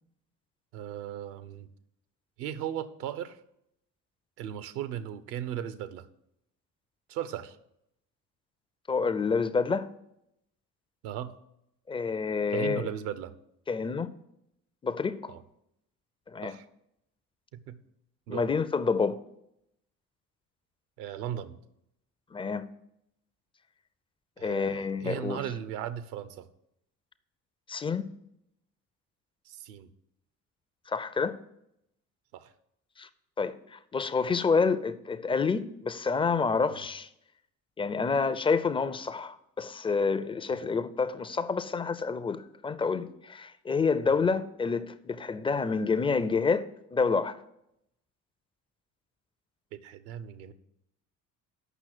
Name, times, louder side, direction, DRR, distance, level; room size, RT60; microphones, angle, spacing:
voice 1, 0.7-1.7 2.4-3.4 4.4-6.0 7.1-7.6 11.0-11.4 12.5-13.3 15.3-15.4 16.4-16.7 17.5-17.8 18.3-18.5 21.0-21.6 24.4-26.5 29.4-29.9 32.3-32.5 36.7-36.9 40.5-40.6 44.1-44.3 49.7-50.5, right 10 dB, 70° right, 0.8 m, -37 dB
voice 2, 8.9-9.9 11.9-12.9 13.7-14.1 14.8-15.3 16.3-16.5 18.3-19.2 22.3-22.7 24.4-25.4 27.7-28.1 30.9-31.4 33.0-33.1 33.4-37.1 37.8-47.4, left 5 dB, 10° left, 0.4 m, -28 dB
8.1 x 5.9 x 7.5 m
figure-of-eight pair, 50°, 48 cm